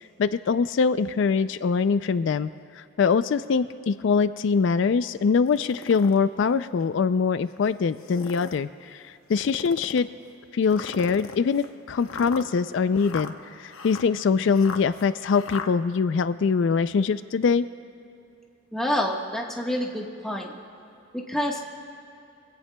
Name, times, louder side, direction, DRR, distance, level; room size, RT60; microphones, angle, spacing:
voice 1, 0.2-2.5 3.0-9.0 9.3-10.1 10.5-13.3 13.6-17.7, left 5 dB, 60° left, 13 dB, 0.3 m, -23 dB
sound 1, 5.5-6.2 6.8-6.9 7.9-8.6 9.3-10.1 10.7-15.7, left 5 dB, 85° left, 0.8 m, -38 dB
voice 2, 18.7-20.5 21.1-21.6, left 1 dB, 5° left, -2 dB, 1.3 m, -28 dB
24.5 x 16.5 x 2.2 m, 2.7 s
head